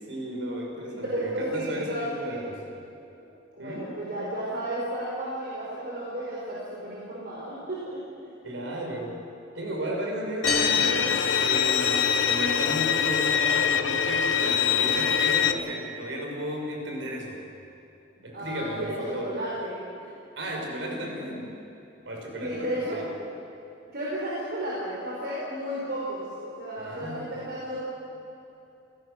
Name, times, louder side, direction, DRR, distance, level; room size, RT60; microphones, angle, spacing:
voice 1, 0.1-2.6 3.6-4.0 8.4-9.2 9.5-17.4 18.2-19.4 20.4-21.5 22.0-23.1 26.8-27.4, equal, 75° right, 0 dB, 5.8 m, -34 dB
voice 2, 0.9-2.6 3.6-8.3 18.3-20.1 22.4-23.0 23.9-27.8, right 1 dB, 55° right, -6 dB, 5.2 m, -33 dB
Bowed string instrument, 10.4-15.5, left 7 dB, 75° left, 1.1 m, -24 dB
sound 1, 10.5-12.2, equal, ahead, 5.0 m, -32 dB
29.0 x 17.5 x 6.6 m, 2.8 s
head